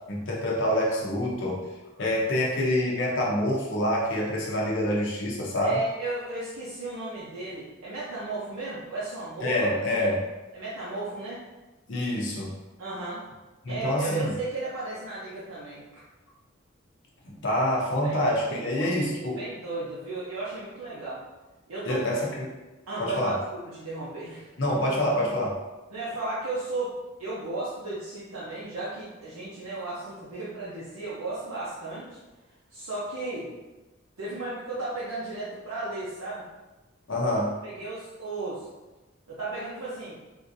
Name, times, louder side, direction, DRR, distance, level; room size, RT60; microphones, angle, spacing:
voice 1, 0.1-1.7 2.0-5.8 9.4-10.2 11.9-12.5 13.6-14.3 17.2-19.4 21.8-22.5 23.0-23.3 24.6-25.6 37.1-37.6, left 1 dB, 60° left, -3 dB, 0.6 m, -26 dB
voice 2, 5.6-9.5 9.9-10.1 10.5-11.4 12.8-13.2 13.7-15.8 18.0-19.1 19.4-21.2 21.7-22.0 22.9-23.3 23.7-24.5 25.9-26.9 27.2-32.2 32.7-33.5 34.2-36.5 37.6-38.7 39.3-40.2, right 2 dB, 80° right, -9 dB, 0.7 m, -34 dB
3.7 x 2.6 x 2.6 m, 1.1 s
head